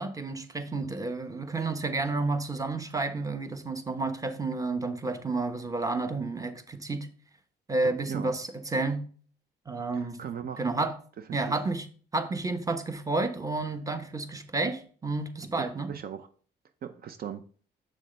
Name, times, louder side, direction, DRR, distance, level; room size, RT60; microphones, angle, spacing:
voice 1, 0.0-7.1 7.7-9.0 9.7-10.2 10.6-11.0 11.3-11.9 12.1-15.9, right 3 dB, 20° right, 1.0 m, -30 dB
voice 2, 9.9-10.7 11.2-11.5 15.6-16.3 16.8-17.4, right 8 dB, 55° right, 0.7 m, -39 dB
7.6 x 6.3 x 3.3 m
cardioid pair, 85°, 18 cm